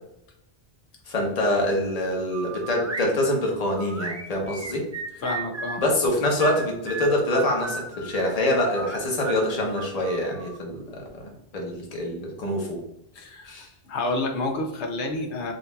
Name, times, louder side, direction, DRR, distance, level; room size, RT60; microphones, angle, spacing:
voice 1, 1.1-4.8 5.8-12.8 13.4-13.7, left 1 dB, 35° left, 0 dB, 1.0 m, -25 dB
sound 1, 2.3-3.1 3.8-5.8 6.4-8.2 8.7-10.6, right 4 dB, 30° right, 0.3 m, -35 dB
voice 2, 5.2-5.8 13.1-13.5 13.9-15.5, left 2 dB, 80° left, 3 dB, 1.0 m, -29 dB
6.4 x 2.6 x 2.3 m, 0.81 s
omnidirectional pair, 1.2 m